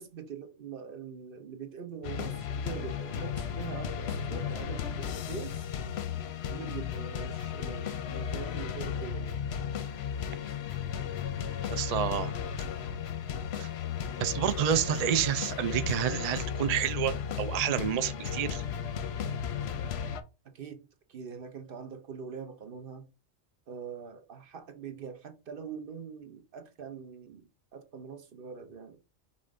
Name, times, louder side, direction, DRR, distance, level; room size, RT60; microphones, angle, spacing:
voice 1, 0.0-5.6 6.5-9.4 20.5-20.8 21.1-23.1 23.7-29.0, right 6 dB, 50° right, 0.9 m, -43 dB
sound 1, 2.0-20.2, left 8 dB, 60° left, 0.8 m, -35 dB
voice 2, 11.7-12.3 13.6-13.7 14.2-18.6, right 10 dB, 75° right, 0.3 m, -29 dB
5.5 x 2.5 x 3.7 m
omnidirectional pair, 1.3 m